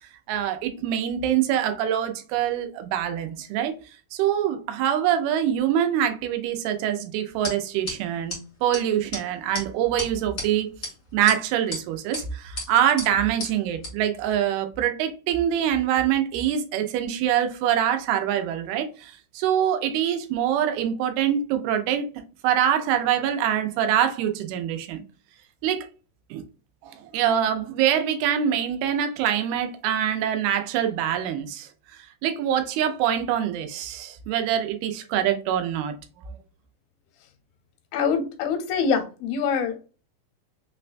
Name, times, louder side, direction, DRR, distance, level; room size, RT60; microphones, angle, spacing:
voice 1, 0.3-3.7 4.1-10.7 11.1-22.1 22.4-25.0 25.6-25.9 26.3-26.4 26.8-35.9, right 10 dB, 85° right, 2.6 m, -24 dB
sound 1, 7.4-7.5 7.9-8.0 8.3-8.4 8.7-8.8 9.1-9.2 9.5-9.6 10.0-10.4 10.8-10.9 11.3-11.8 12.1-12.2 12.6-12.7 13.0-13.1 13.4-13.5 13.8-13.9, left 2 dB, 65° left, 0.8 m, -31 dB
voice 2, 37.9-39.9, left 6 dB, 90° left, 2.7 m, -25 dB
6.0 x 2.2 x 2.5 m
omnidirectional pair, 4.3 m